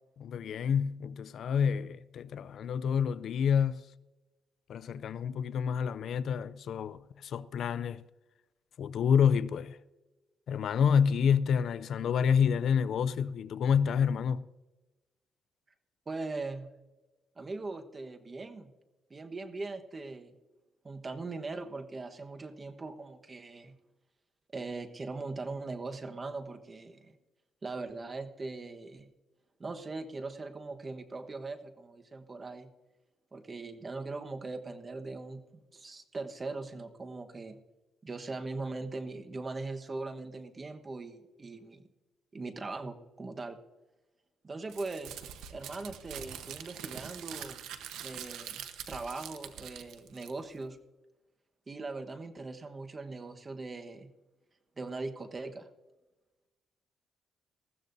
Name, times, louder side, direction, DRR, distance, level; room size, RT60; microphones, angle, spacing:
voice 1, 0.2-3.9 4.7-8.0 8.8-9.8 10.5-14.4, left 7 dB, 65° left, 0.4 m, -28 dB
voice 2, 16.1-16.7 17.4-18.7 19.1-20.3 20.8-23.8 24.5-27.2 27.6-29.1 29.6-32.7 33.3-37.6 38.0-41.8 42.3-43.6 44.4-45.2 45.5-47.6 48.0-50.8 51.7-54.1 54.8-55.7, right 3 dB, 30° right, 1.2 m, -40 dB
Crumpling crinkling, 44.7-50.6, right 9 dB, 85° right, 1.0 m, -44 dB
20.0 x 14.5 x 2.7 m
cardioid pair, 90°, 0 cm